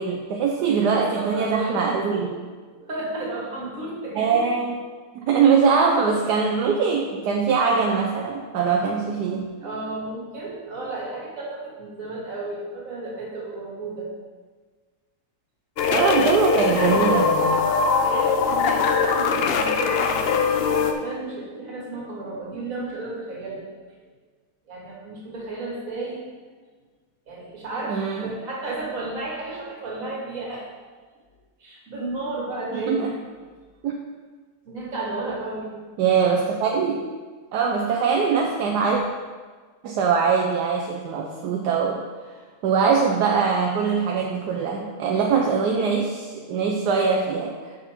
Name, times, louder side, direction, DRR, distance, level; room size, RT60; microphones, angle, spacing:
voice 1, 0.0-2.4 4.1-4.8 5.1-9.4 15.9-17.6 27.9-28.3 32.7-33.1 33.8-34.0 36.0-37.0 37.5-39.0 39.8-42.0 42.6-47.5, right 5 dB, 80° right, 0 dB, 1.3 m, -22 dB
voice 2, 0.6-2.3 2.7-4.5 5.2-5.3 9.6-14.1 16.6-17.4 18.0-23.7 24.7-26.3 27.3-30.6 31.6-33.0 33.4-33.5 34.7-35.8, right 2 dB, 55° right, -4 dB, 2.2 m, -33 dB
sound 1, 15.8-20.9, left 5 dB, 90° left, 0.5 m, -21 dB
6.7 x 6.2 x 4.4 m, 1.4 s
omnidirectional pair, 1.8 m